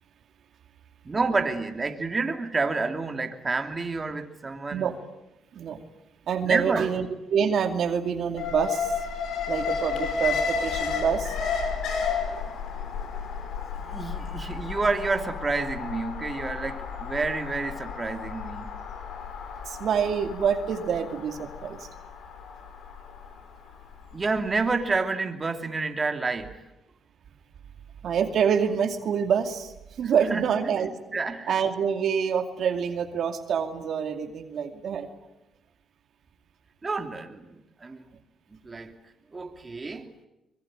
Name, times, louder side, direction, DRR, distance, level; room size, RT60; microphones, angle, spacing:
voice 1, 1.0-4.9 6.4-6.9 13.8-18.7 24.1-26.6 30.0-30.4 31.1-31.5 36.8-38.0 38.6-39.0 39.3-40.1, right 3 dB, 30° right, 5 dB, 2.8 m, -29 dB
voice 2, 6.3-8.9 9.5-11.4 19.7-21.9 28.0-29.7 30.0-30.9 31.5-35.1, right 7 dB, 65° right, 6 dB, 2.4 m, -26 dB
Alarm, 8.4-24.5 24.8-24.9, left 6 dB, 75° left, 5.2 m, -32 dB
24.5 x 22.0 x 9.0 m, 0.94 s
cardioid pair, 90°, 0 cm